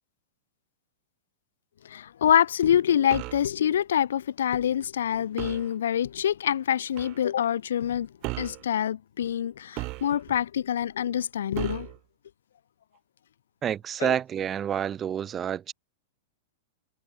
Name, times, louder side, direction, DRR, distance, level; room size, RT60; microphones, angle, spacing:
voice 1, 1.8-8.1 8.4-11.9 14.0-14.1, left 9 dB, 90° left, 3.2 m, -26 dB
sound 1, 3.1-3.5 5.4-5.7 7.0-7.2 8.2-8.6 9.8-10.4 11.6-12.0, right 25 dB, 35° right, 5.6 m, -35 dB
voice 2, 13.6-15.7, right 9 dB, 15° right, 5.8 m, -28 dB
supercardioid pair, 165°, 0 cm